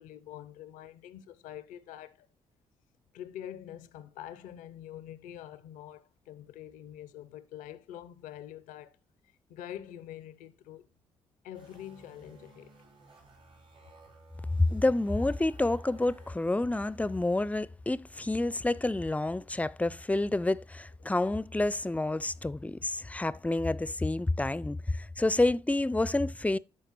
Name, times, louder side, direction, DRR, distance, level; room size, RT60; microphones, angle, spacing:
voice 1, 0.0-2.3 3.1-9.0 9.5-10.9 11.4-12.7, left 11 dB, 75° left, 0.5 m, -45 dB
sound 1, 11.5-17.5, right 2 dB, 70° right, 4.7 m, -57 dB
voice 2, 14.6-26.6, left 2 dB, 10° left, 0.4 m, -29 dB
13.0 x 4.5 x 3.0 m
hypercardioid pair, 45°, 13 cm